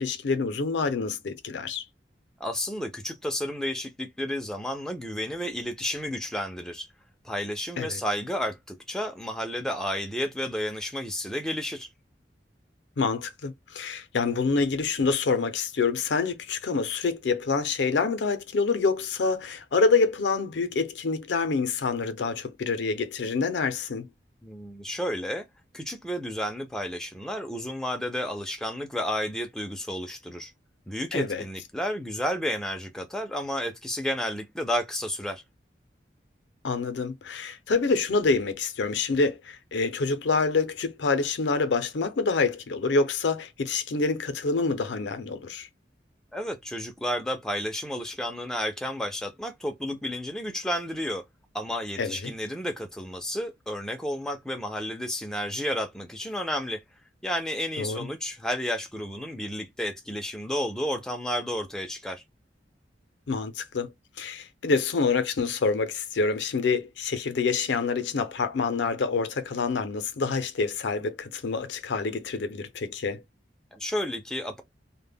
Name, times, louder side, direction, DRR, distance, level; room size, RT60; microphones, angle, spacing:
voice 1, 0.0-1.8 7.8-8.0 13.0-24.1 31.1-31.4 36.6-45.7 52.0-52.3 57.8-58.1 63.3-63.9 64.2-73.2, left 4 dB, 75° left, 0.5 m, -27 dB
voice 2, 2.4-6.9 7.2-11.9 24.4-25.4 25.7-30.5 30.9-35.4 46.3-51.2 51.5-56.8 57.2-62.2 73.7-74.6, equal, 5° left, 0.3 m, -31 dB
2.1 x 2.0 x 3.3 m
head